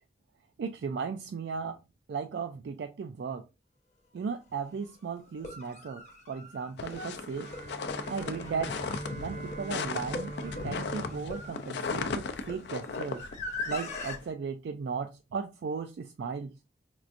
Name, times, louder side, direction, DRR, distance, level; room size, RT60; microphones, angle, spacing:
voice 1, 0.6-1.8 2.1-3.4 4.1-7.5 8.1-8.7 9.2-13.2 13.7-16.5, right 5 dB, 75° right, 0.3 m, -36 dB
sound 1, 4.2-4.3 5.3-14.2, left 2 dB, 40° left, 0.8 m, -42 dB
sound 2, 6.8-14.3, left 4 dB, 75° left, 0.4 m, -37 dB
Bowed string instrument, 7.2-12.7, right 2 dB, 45° right, 0.7 m, -43 dB
4.5 x 2.5 x 2.5 m
head